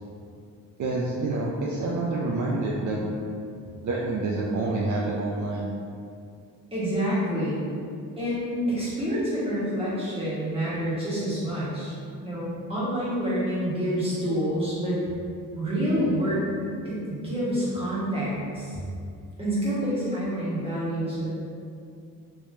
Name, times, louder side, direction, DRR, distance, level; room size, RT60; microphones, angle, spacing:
voice 1, 0.8-3.1 3.8-5.7, right 2 dB, 60° right, -3 dB, 0.5 m, -27 dB
voice 2, 6.7-7.7 8.2-15.0 15.5-16.5 16.8-18.8 19.4-21.3, equal, 15° right, -10 dB, 1.5 m, -27 dB
3.4 x 3.1 x 2.7 m, 2.4 s
cardioid pair, 90°, 35 cm